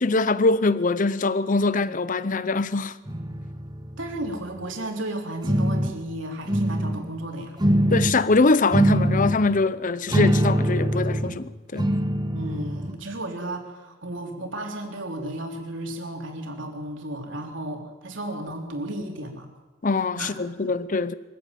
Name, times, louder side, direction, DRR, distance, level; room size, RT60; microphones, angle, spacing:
voice 1, 0.0-3.0 7.9-11.9 19.8-21.2, left 3 dB, 40° left, 0.8 m, -23 dB
sound 1, 3.1-4.6 5.4-6.0 6.5-7.0 7.6-8.2 8.7-9.4 10.1-11.4 11.8-12.9, equal, 20° right, 1.4 m, -23 dB
voice 2, 4.0-7.6 12.3-19.5 20.2-20.8, right 1 dB, 65° right, 3.8 m, -34 dB
24.0 x 15.5 x 9.2 m
head